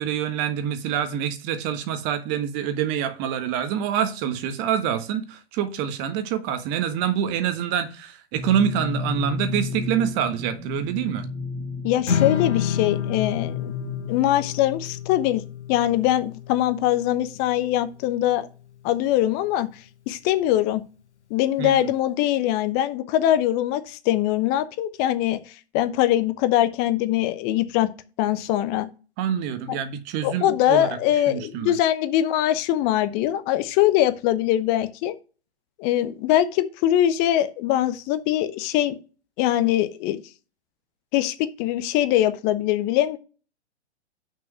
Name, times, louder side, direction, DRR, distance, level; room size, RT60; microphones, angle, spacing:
voice 1, 0.0-11.3 21.6-21.9 29.2-30.9 31.1-31.7, right 9 dB, 30° right, 1.4 m, -26 dB
sound 1, 8.3-14.1, left 3 dB, 10° right, 0.4 m, -33 dB
voice 2, 11.8-13.7 14.1-15.4 15.7-18.5 18.8-19.7 20.1-20.8 21.3-25.4 25.7-27.9 28.2-28.9 29.7-29.8 30.2-35.1 35.8-38.9 39.4-40.2 41.1-43.2, left 13 dB, 30° left, 0.8 m, -22 dB
Strum, 12.1-18.3, left 8 dB, 85° left, 1.2 m, -30 dB
6.3 x 5.4 x 6.0 m
figure-of-eight pair, 110°, 34 cm